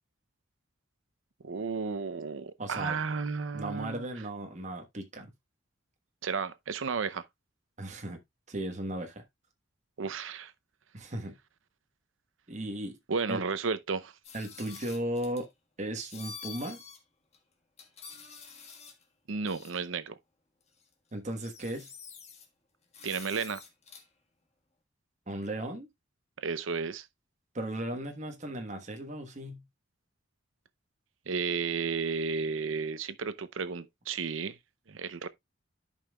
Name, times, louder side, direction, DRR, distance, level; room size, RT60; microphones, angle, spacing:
voice 1, 1.4-4.1 6.2-7.3 10.0-10.5 13.1-14.1 19.3-20.2 23.0-23.6 26.4-27.1 31.3-34.6 34.9-35.3, right 5 dB, 80° right, 0.6 m, -33 dB
voice 2, 2.6-3.0 3.5-5.3 7.8-8.2 8.5-9.2 10.9-11.3 12.5-13.0 13.3-13.4 14.3-15.5 15.8-16.8 21.1-21.9 25.3-25.9 27.5-29.6, right 1 dB, 35° right, 1.3 m, -36 dB
sound 1, 14.2-15.5 16.1-17.0 17.3-17.4 17.8-19.0 19.5-19.8 20.8-20.9 21.2-22.5 22.9-24.1, left 6 dB, 35° left, 1.5 m, -47 dB
13.0 x 5.5 x 2.3 m
head